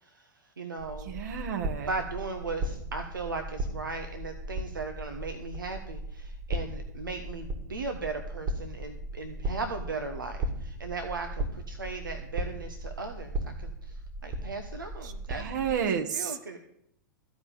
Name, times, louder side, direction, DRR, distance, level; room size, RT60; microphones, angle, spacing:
voice 1, 0.0-1.2 1.9-15.8 16.1-16.6, right 3 dB, 90° right, 6 dB, 1.1 m, -37 dB
sound 1, 0.8-15.8, right 1 dB, 45° right, 2.6 m, -37 dB
voice 2, 1.0-1.9 15.0-16.4, right 7 dB, 65° right, 6 dB, 1.6 m, -31 dB
14.5 x 5.2 x 8.8 m, 0.77 s
hypercardioid pair, 105°, 11 cm